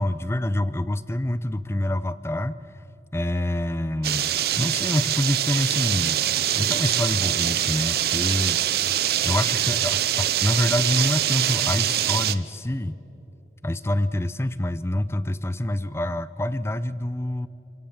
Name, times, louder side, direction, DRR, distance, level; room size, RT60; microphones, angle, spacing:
voice 1, 0.0-2.6 3.1-6.2 6.6-8.6 9.2-13.0 13.6-17.5, left 1 dB, 15° left, 16 dB, 0.5 m, -26 dB
sound 1, 4.0-12.3, right 11 dB, 60° right, 0.6 m, -24 dB
28.5 x 17.5 x 7.2 m, 3.0 s
head